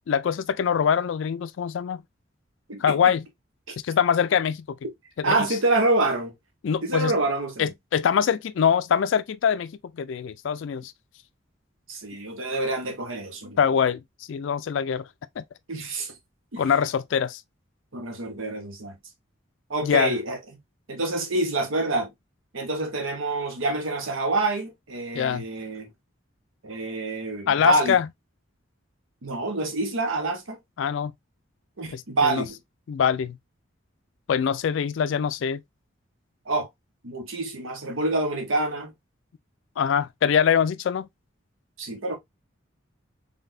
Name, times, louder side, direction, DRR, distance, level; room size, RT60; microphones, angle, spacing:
voice 1, 0.1-2.0 2.8-3.2 3.8-4.6 5.2-5.4 6.6-7.1 7.6-9.7 10.0-10.9 13.6-14.0 14.3-15.1 15.4-15.5 16.6-17.4 19.8-20.1 25.1-25.4 27.5-28.1 30.8-31.1 31.9-32.4 32.9-33.4 34.3-35.6 39.8-41.1, left 7 dB, 70° left, 0.3 m, -23 dB
voice 2, 5.2-6.3 6.8-7.7 11.9-13.6 15.7-16.1 16.5-16.6 17.9-19.0 19.7-20.4 20.9-22.1 22.5-25.9 26.6-28.0 29.2-30.6 31.8-32.6 36.5-36.7 37.0-38.9 41.8-42.2, right 2 dB, 90° right, 1.0 m, -27 dB
3.9 x 3.5 x 2.6 m
head